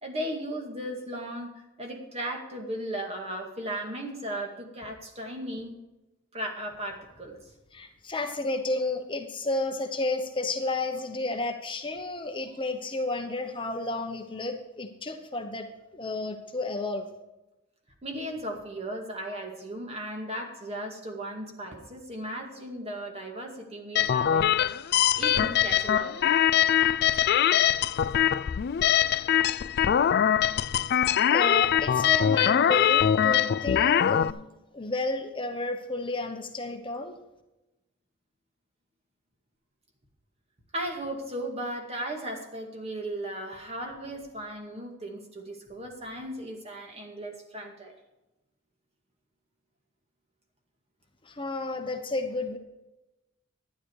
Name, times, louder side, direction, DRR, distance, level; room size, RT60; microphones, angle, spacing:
voice 1, 0.0-1.5 1.8-5.8 6.3-7.3 18.0-26.3 40.7-47.9, right 1 dB, 30° right, 2 dB, 2.2 m, -36 dB
voice 2, 7.7-15.7 15.9-17.1 31.3-34.4 34.7-37.2 51.2-52.6, left 2 dB, 25° left, 5 dB, 0.9 m, -31 dB
sound 1, 24.0-34.3, left 9 dB, 55° left, 0.3 m, -23 dB
12.0 x 10.0 x 4.7 m, 0.99 s
head